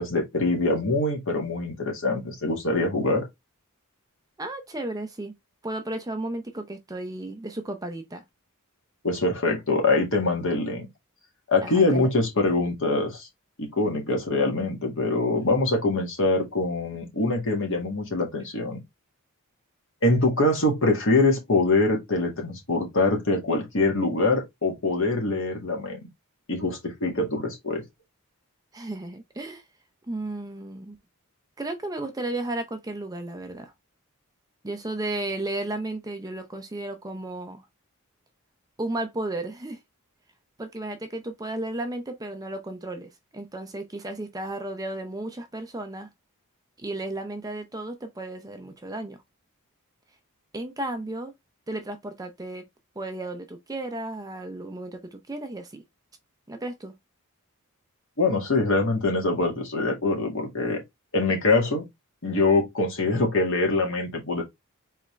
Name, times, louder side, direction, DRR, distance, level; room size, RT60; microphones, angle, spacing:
voice 1, 0.0-3.2 9.0-10.9 11.5-13.3 13.6-18.8 20.0-26.0 26.5-27.8 58.2-60.8 61.1-61.9 62.2-64.4, left 2 dB, 60° left, 2.0 m, -24 dB
voice 2, 4.4-5.3 5.6-8.2 11.6-12.1 15.3-15.6 28.7-29.6 30.1-31.0 31.6-33.7 34.6-37.6 38.8-39.8 40.6-46.1 46.8-49.2 50.5-51.3 51.7-52.7 53.0-55.8 56.5-56.9, right 2 dB, 15° right, 0.7 m, -34 dB
4.2 x 3.7 x 3.3 m
head